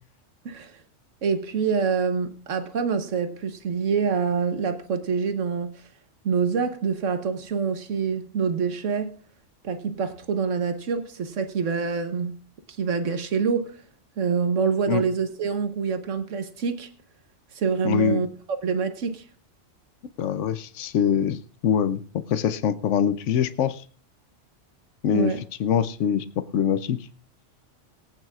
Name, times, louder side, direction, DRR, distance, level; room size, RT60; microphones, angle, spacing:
voice 1, 0.4-0.8 1.2-5.8 6.2-9.1 9.6-12.4 12.8-13.8 14.2-16.9 17.5-18.3 18.6-19.2 25.1-25.4, right 5 dB, 90° right, 8 dB, 1.4 m, -26 dB
voice 2, 17.8-18.2 20.2-22.0 22.3-23.8 25.0-25.3 25.6-27.0, left 8 dB, 80° left, 12 dB, 1.0 m, -24 dB
22.0 x 9.0 x 2.4 m, 0.40 s
omnidirectional pair, 1.3 m